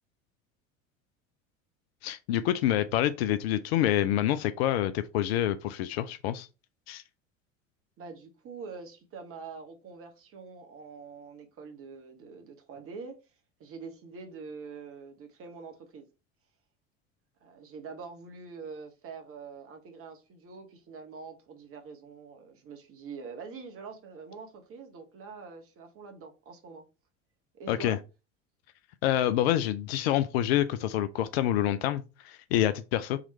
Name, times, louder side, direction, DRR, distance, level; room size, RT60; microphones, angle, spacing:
voice 1, 2.0-6.5 6.9-7.0 27.7-28.0 29.0-33.2, left 12 dB, 50° left, 0.4 m, -27 dB
voice 2, 8.0-13.2 13.6-16.1 17.4-26.8 27.5-28.0, right 5 dB, 35° right, 1.0 m, -45 dB
3.7 x 3.0 x 4.2 m
figure-of-eight pair, 70°, 40 cm